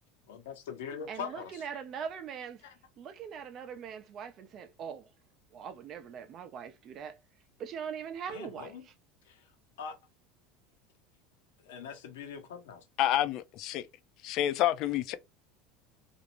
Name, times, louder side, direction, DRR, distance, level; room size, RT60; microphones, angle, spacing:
voice 1, 0.3-1.8 2.6-2.7 8.3-8.9 9.2-9.5 9.8-9.9 11.6-12.9 15.1-15.2, left 6 dB, 90° left, 1.0 m, -42 dB
voice 2, 1.1-2.6 3.0-5.1 5.5-7.2 7.6-8.7, right 7 dB, 45° right, 0.5 m, -41 dB
voice 3, 13.0-13.9 14.2-15.1, left 13 dB, 55° left, 0.4 m, -28 dB
2.5 x 2.0 x 3.0 m
supercardioid pair, 120°, 0 cm